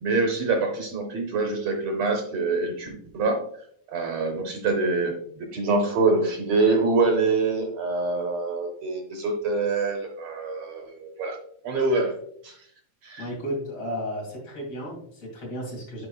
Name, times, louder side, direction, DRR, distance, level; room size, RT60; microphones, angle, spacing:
voice 1, 0.0-3.4 3.9-11.4 11.6-12.1 12.4-12.7 13.0-13.3, right 3 dB, 70° right, 3 dB, 1.8 m, -25 dB
voice 2, 13.2-16.1, equal, 50° left, -2 dB, 3.0 m, -33 dB
10.0 x 4.7 x 2.3 m, 0.66 s
omnidirectional pair, 3.6 m